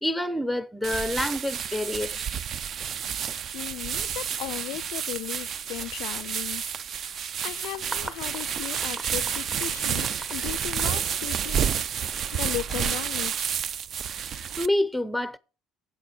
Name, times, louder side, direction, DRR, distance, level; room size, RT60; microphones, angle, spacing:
voice 1, 0.0-2.3 14.3-15.4, left 1 dB, ahead, 0.6 m, -28 dB
sound 1, 0.8-14.7, right 8 dB, 40° right, 0.5 m, -30 dB
voice 2, 3.5-6.6 6.9-11.7 12.3-13.5, left 18 dB, 85° left, 0.4 m, -36 dB
sound 2, 7.4-11.8, right 1 dB, 15° right, 1.0 m, -41 dB
8.0 x 6.7 x 6.3 m
cardioid pair, 140°, 0 cm